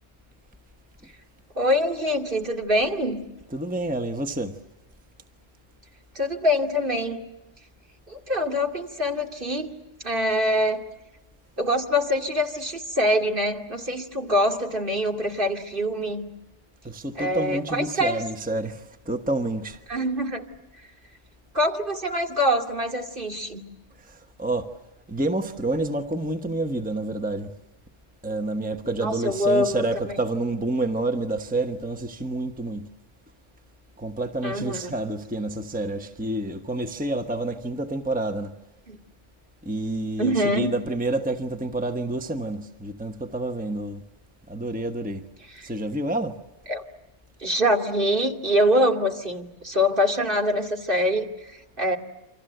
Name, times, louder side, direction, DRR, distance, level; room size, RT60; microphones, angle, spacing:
voice 1, 1.6-3.2 6.1-7.2 8.1-9.8 10.0-10.8 11.6-16.3 17.2-18.2 19.9-20.4 21.5-23.6 29.0-30.1 34.4-34.9 38.9-39.0 40.2-40.7 45.6-45.7 46.7-46.8 47.4-52.0, equal, 50° right, 2.7 m, -24 dB
voice 2, 3.5-4.6 16.8-19.8 24.0-24.7 25.1-27.5 28.2-32.9 34.0-38.5 39.6-44.0 44.5-45.2 45.6-46.4, right 2 dB, 10° right, 1.1 m, -28 dB
29.0 x 26.0 x 7.9 m
omnidirectional pair, 1.2 m